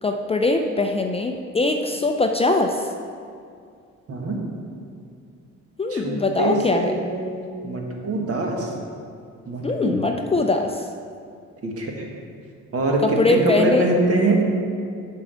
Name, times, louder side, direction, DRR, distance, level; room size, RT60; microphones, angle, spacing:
voice 1, 0.0-2.9 5.8-7.0 9.6-10.9 13.0-13.9, left 2 dB, 20° left, 4 dB, 0.4 m, -22 dB
voice 2, 5.9-8.7 9.5-10.0 11.6-12.0 12.7-14.4, right 2 dB, 50° right, 0 dB, 1.5 m, -24 dB
7.0 x 4.6 x 6.7 m, 2.4 s
cardioid pair, 90°, 30 cm